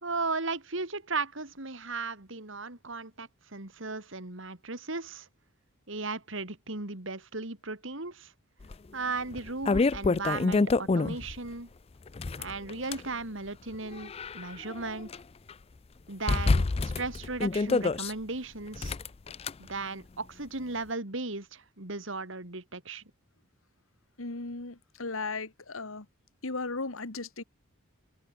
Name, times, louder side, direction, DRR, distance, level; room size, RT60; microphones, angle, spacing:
voice 1, 0.0-5.3 5.9-8.3 8.9-11.7 12.4-15.1 16.1-19.0 19.6-23.0, right 3 dB, 65° right, 2.8 m, -36 dB
sound 1, 8.7-8.8 9.3-11.4 12.1-13.1 13.7-15.2 15.5-15.6 16.3-18.1 18.7-19.5, left 3 dB, 30° left, 0.4 m, -27 dB
voice 2, 24.2-26.1 26.4-27.4, left 3 dB, 75° left, 1.9 m, -36 dB
head